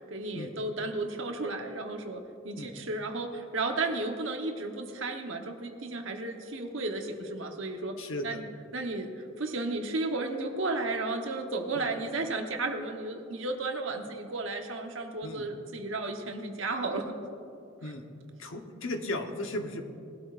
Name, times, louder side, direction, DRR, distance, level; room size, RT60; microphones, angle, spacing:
voice 1, 0.1-8.0 8.2-8.4 8.7-17.1 17.8-17.9, right 2 dB, 70° right, 4 dB, 1.2 m, -33 dB
voice 2, 8.0-8.4 11.7-11.9 15.2-15.5 17.8-18.0 18.4-19.8, left 1 dB, 80° left, 4 dB, 1.1 m, -36 dB
20.0 x 12.5 x 2.5 m, 2.6 s
head